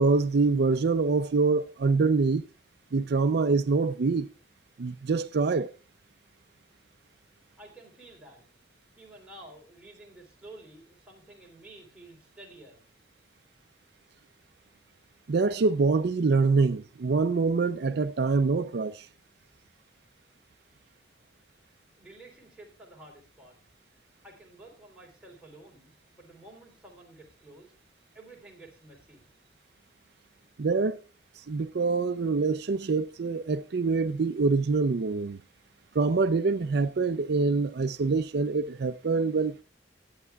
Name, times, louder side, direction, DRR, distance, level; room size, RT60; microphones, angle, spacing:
voice 1, 0.0-2.5 2.9-4.3 4.8-5.7 15.3-19.1 30.6-31.0 31.4-35.4 35.9-39.6, right 4 dB, 60° right, 0.5 m, -25 dB
voice 2, 7.6-8.4 9.0-12.8 22.0-23.6 24.2-27.7 28.1-29.2, right 2 dB, 5° right, 3.4 m, -51 dB
19.0 x 8.8 x 2.3 m
head